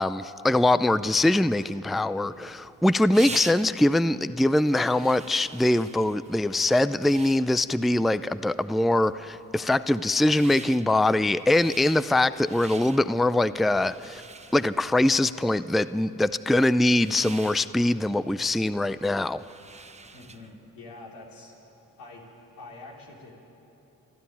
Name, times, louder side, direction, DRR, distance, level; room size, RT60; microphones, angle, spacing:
voice 1, 0.0-14.2 14.5-19.4, left 1 dB, ahead, 15 dB, 0.4 m, -23 dB
sound 1, 2.1-20.6, right 3 dB, 20° right, 0.9 m, -45 dB
voice 2, 20.1-21.6 22.0-22.2 22.6-23.3, left 2 dB, 90° left, -2 dB, 4.0 m, -45 dB
28.5 x 12.0 x 9.2 m, 3.0 s
cardioid pair, 70°, 35 cm